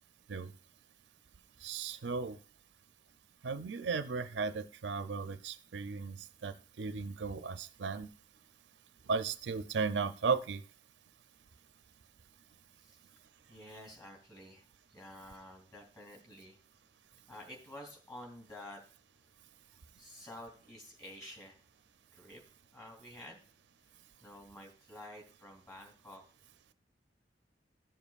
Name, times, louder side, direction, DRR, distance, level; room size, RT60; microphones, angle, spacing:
voice 1, 1.6-2.4 3.4-8.1 9.1-10.6, right 5 dB, 85° right, 11 dB, 0.5 m, -35 dB
voice 2, 13.5-16.6 17.3-18.8 20.0-21.6 22.1-22.4 22.7-23.4 24.2-26.2, left 1 dB, 25° left, 1 dB, 2.7 m, -50 dB
14.0 x 7.1 x 2.4 m, 0.40 s
head